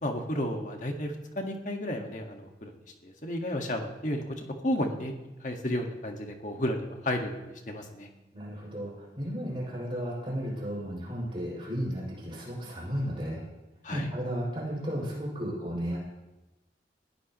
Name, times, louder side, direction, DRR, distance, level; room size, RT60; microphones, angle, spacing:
voice 1, 0.0-2.7 3.0-8.1 13.8-14.1, left 1 dB, 45° left, 3 dB, 1.8 m, -33 dB
voice 2, 8.3-13.4 13.9-16.0, equal, 30° right, -4 dB, 6.8 m, -34 dB
20.5 x 16.0 x 3.1 m, 1.0 s
head